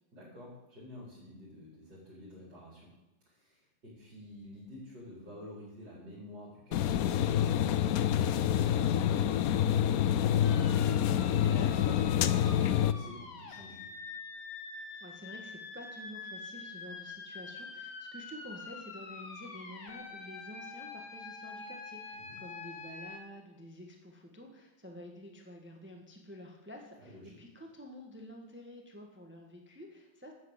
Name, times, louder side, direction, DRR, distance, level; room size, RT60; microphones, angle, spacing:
voice 1, 0.1-2.9 3.3-9.4 9.7-13.9 22.2-22.4 27.0-27.3, left 1 dB, 55° right, -7 dB, 5.1 m, -49 dB
sound 1, 6.7-12.9, left 10 dB, 90° left, 0.8 m, -27 dB
sound 2, 10.4-23.2, left 4 dB, 55° left, 2.1 m, -46 dB
voice 2, 15.0-30.3, equal, 5° right, 2 dB, 1.4 m, -49 dB
12.5 x 8.1 x 8.1 m, 0.96 s
omnidirectional pair, 2.2 m